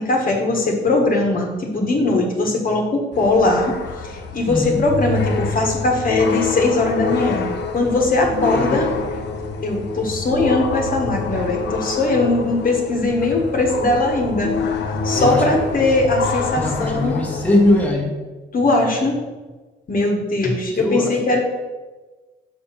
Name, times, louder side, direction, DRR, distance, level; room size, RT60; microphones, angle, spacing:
voice 1, 0.0-3.7 4.0-7.5 7.7-8.9 9.6-14.5 15.0-17.2 18.5-19.2 19.9-21.4, left 2 dB, 45° left, 0 dB, 1.5 m, -20 dB
sound 1, 3.1-17.9, left 4 dB, 60° left, 0.9 m, -26 dB
voice 2, 4.5-4.8 8.4-9.0 15.2-15.4 16.5-18.1 20.7-21.2, left 1 dB, 5° left, -2 dB, 1.5 m, -20 dB
6.7 x 4.3 x 5.7 m, 1.2 s
cardioid pair, 90°, 20 cm